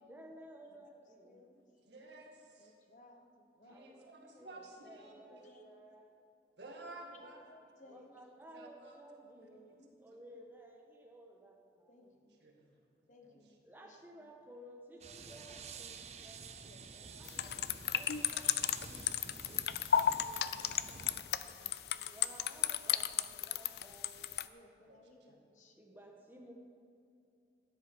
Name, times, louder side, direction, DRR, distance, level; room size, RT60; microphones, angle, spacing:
voice 1, 0.0-1.4 3.7-6.1 7.9-12.2 13.6-16.5 17.2-19.6 21.1-24.3 25.8-26.5, right 1 dB, 10° right, 0 dB, 1.3 m, -56 dB
voice 2, 1.2-1.6 2.6-3.3 3.6-3.8 5.0-5.6 7.0-8.2 9.5-10.3 11.9-12.4 13.1-14.0 15.0-15.8 16.6-17.5 18.5-19.5 20.2-21.7 22.3-22.4 23.0-23.1 24.4-25.9, left 2 dB, 45° left, 4 dB, 1.1 m, -62 dB
voice 3, 1.9-2.7 3.6-5.1 6.6-7.4 7.9-8.9 9.4-9.5 12.4-12.7 13.2-13.6 21.7-21.9 24.9-25.4, right 2 dB, 80° right, 1 dB, 1.9 m, -53 dB
sound 1, 15.0-21.2, right 5 dB, 40° right, 0.6 m, -51 dB
sound 2, 17.3-24.5, left 10 dB, 70° left, 0.4 m, -33 dB
12.5 x 10.0 x 5.4 m, 2.6 s
head